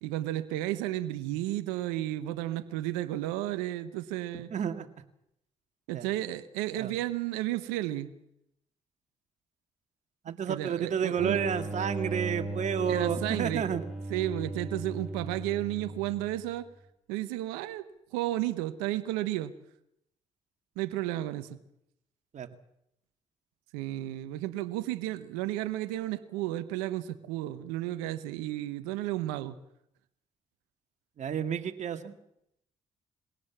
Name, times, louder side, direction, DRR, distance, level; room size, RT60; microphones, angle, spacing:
voice 1, 0.0-4.5 5.9-8.1 10.5-11.4 12.9-13.7 14.1-16.7 17.1-17.8 18.1-19.5 20.8-21.5 23.7-29.6, right 15 dB, 85° right, 12 dB, 1.1 m, -33 dB
voice 2, 4.5-4.9 5.9-6.1 6.8-6.9 10.3-13.8 22.3-22.5 31.2-32.1, right 8 dB, 55° right, 7 dB, 2.1 m, -31 dB
sound 1, 11.2-16.5, right 2 dB, ahead, 5.2 m, -37 dB
22.0 x 17.5 x 7.3 m, 0.77 s
hypercardioid pair, 55°, 14 cm